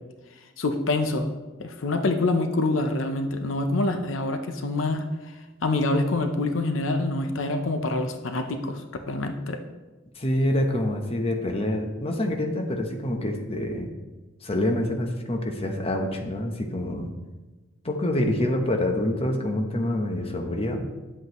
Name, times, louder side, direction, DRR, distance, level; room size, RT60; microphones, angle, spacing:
voice 1, 0.6-1.3 1.6-5.1 5.6-9.6, left 2 dB, 85° left, 6 dB, 0.7 m, -26 dB
voice 2, 10.2-13.9 14.4-17.1 17.8-20.9, left 1 dB, 30° left, 3 dB, 0.9 m, -26 dB
9.8 x 7.9 x 3.1 m, 1.2 s
head